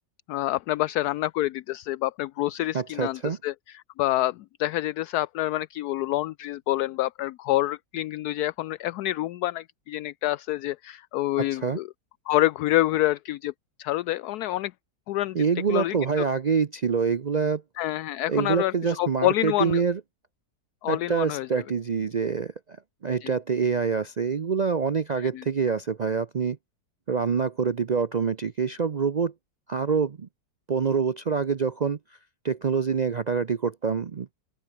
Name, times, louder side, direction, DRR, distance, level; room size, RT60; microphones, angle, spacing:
voice 1, 0.3-11.9 12.3-13.5 13.8-14.7 15.1-15.4 15.7-16.2 17.8-19.8 20.8-21.5 23.2-23.3 25.2-25.4, left 15 dB, 75° left, 1.0 m, -27 dB
voice 2, 2.7-3.4 11.4-11.8 15.3-17.6 18.3-20.0 20.9-22.5 23.0-26.6 27.1-29.3 29.7-30.3 30.7-32.0 32.4-34.3, right 5 dB, 80° right, 0.3 m, -26 dB
open air
omnidirectional pair, 1.8 m